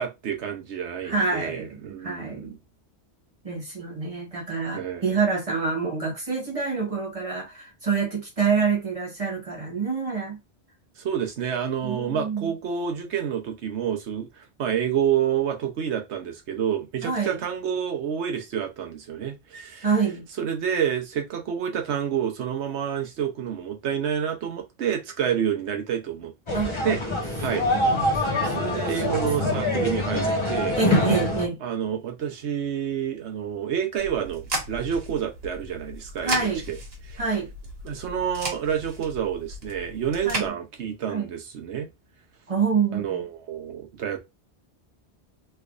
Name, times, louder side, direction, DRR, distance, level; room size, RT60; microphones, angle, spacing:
voice 1, 0.0-2.6 4.7-5.1 11.0-19.9 20.4-26.3 26.8-27.0 27.4-27.7 28.4-30.8 31.6-36.8 37.1-37.2 37.8-41.9 42.9-44.2, right 8 dB, 90° right, 1.1 m, -28 dB
voice 2, 1.0-2.5 3.4-10.4 11.8-12.5 17.0-17.4 19.8-20.2 26.5-26.7 27.7-29.6 30.8-31.6 36.2-36.6 37.2-37.5 40.2-40.5 41.1-41.3 42.5-43.2, right 5 dB, 35° right, 1.2 m, -27 dB
sound 1, 26.5-31.5, left 1 dB, 30° left, 0.7 m, -25 dB
sound 2, 34.0-40.5, right 2 dB, 65° right, 1.4 m, -35 dB
3.3 x 3.2 x 2.4 m
omnidirectional pair, 1.1 m